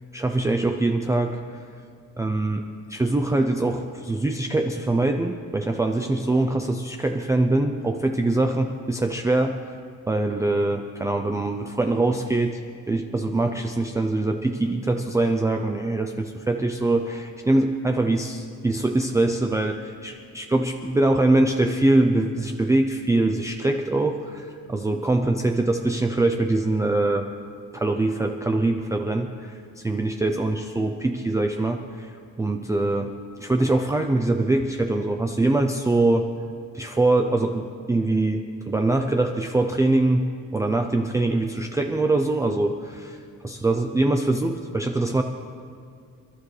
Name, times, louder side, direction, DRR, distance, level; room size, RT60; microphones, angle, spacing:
voice 1, 0.1-1.6 2.2-2.6 2.9-9.8 10.1-12.6 12.9-27.3 27.7-36.3 36.7-45.2, right 2 dB, 10° right, 4 dB, 0.5 m, -23 dB
29.0 x 12.0 x 3.3 m, 2.3 s
cardioid pair, 145°, 32 cm